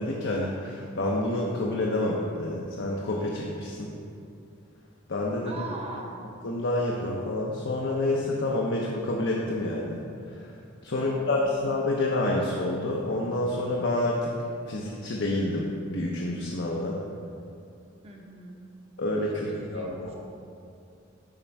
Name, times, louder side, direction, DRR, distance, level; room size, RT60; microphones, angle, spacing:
voice 1, 0.0-3.9 5.1-5.6 6.4-10.5 10.8-14.3 14.7-17.0 19.0-20.2, left 1 dB, 60° left, -2 dB, 0.7 m, -28 dB
voice 2, 5.4-6.2 11.0-11.5 18.0-18.7 19.5-20.2, right 2 dB, 30° right, 0 dB, 0.9 m, -41 dB
7.4 x 5.1 x 4.5 m, 2.5 s
head